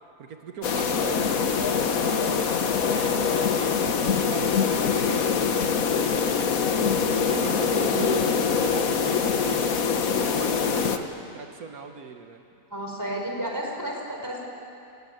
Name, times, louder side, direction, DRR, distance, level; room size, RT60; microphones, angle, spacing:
voice 1, 0.2-2.3 2.8-5.6 5.9-8.1 8.6-9.7 10.1-12.4, right 6 dB, 85° right, 5 dB, 1.8 m, -39 dB
sound 1, 0.6-11.0, left 6 dB, 70° left, 1.6 m, -24 dB
voice 2, 7.7-8.2 12.7-14.5, right 1 dB, 10° right, -1 dB, 5.0 m, -31 dB
30.0 x 17.0 x 9.5 m, 2.6 s
omnidirectional pair, 1.5 m